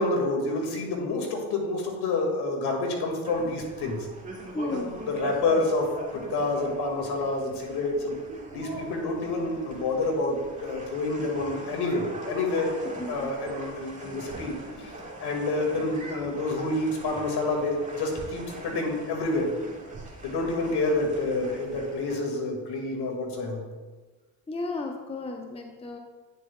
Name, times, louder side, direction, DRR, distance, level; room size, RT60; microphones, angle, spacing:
voice 1, 0.0-4.1 4.6-8.2 8.5-12.7 13.1-14.5 14.8-14.9 15.2-19.5 20.2-23.6, left 2 dB, 60° left, 1 dB, 1.9 m, -28 dB
sound 1, 3.2-22.2, right 1 dB, 15° right, 2.1 m, -42 dB
voice 2, 4.5-4.9 13.0-13.3 24.5-26.0, left 2 dB, 15° left, 4 dB, 0.8 m, -33 dB
9.1 x 7.1 x 2.2 m, 1.3 s
hypercardioid pair, 55°, 44 cm